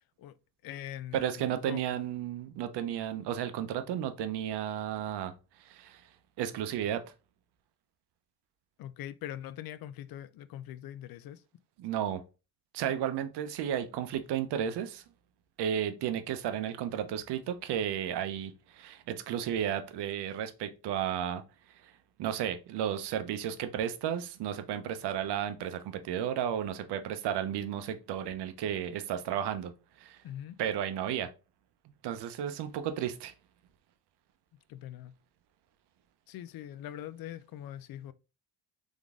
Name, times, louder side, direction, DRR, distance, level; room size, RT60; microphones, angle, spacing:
voice 1, 0.6-1.8 8.8-11.4 30.2-30.6 34.7-35.1 36.3-38.1, left 11 dB, 60° left, 0.5 m, -42 dB
voice 2, 1.1-5.3 5.6-6.0 6.4-7.0 11.8-12.2 12.7-15.0 15.6-21.4 21.8-21.9 22.2-29.7 30.0-30.2 30.6-31.3 32.0-33.3, right 9 dB, 75° right, 0.8 m, -33 dB
3.8 x 3.6 x 3.5 m
cardioid pair, 115°, 41 cm